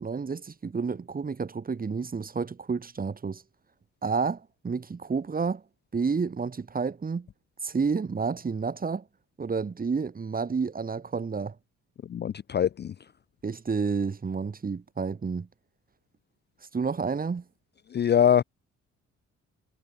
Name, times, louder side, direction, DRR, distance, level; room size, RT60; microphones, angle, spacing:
voice 1, 0.0-3.4 4.0-5.6 5.9-7.3 7.6-9.0 9.4-11.6 13.4-15.5 16.7-17.4, right 5 dB, 30° right, 1.9 m, -30 dB
voice 2, 12.1-12.9 17.9-18.4, left 9 dB, 35° left, 0.5 m, -23 dB
cardioid pair, 90°, 30 cm